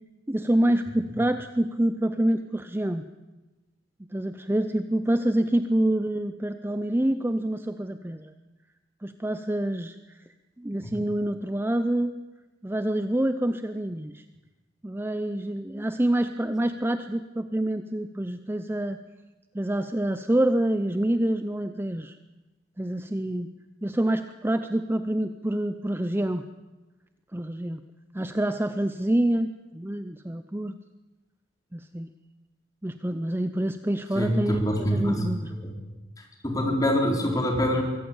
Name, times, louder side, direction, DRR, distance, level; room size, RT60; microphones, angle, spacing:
voice 1, 0.3-3.0 4.1-8.3 9.0-10.2 10.6-12.2 12.6-14.2 14.8-19.0 19.5-22.2 22.8-23.5 23.8-26.4 27.3-27.8 28.1-30.7 31.7-32.1 32.8-35.5, right 1 dB, 10° right, 10 dB, 0.6 m, -27 dB
voice 2, 34.1-35.3 35.6-35.7 36.4-37.8, equal, 20° left, 1 dB, 4.0 m, -25 dB
23.5 x 14.5 x 8.8 m, 1.1 s
head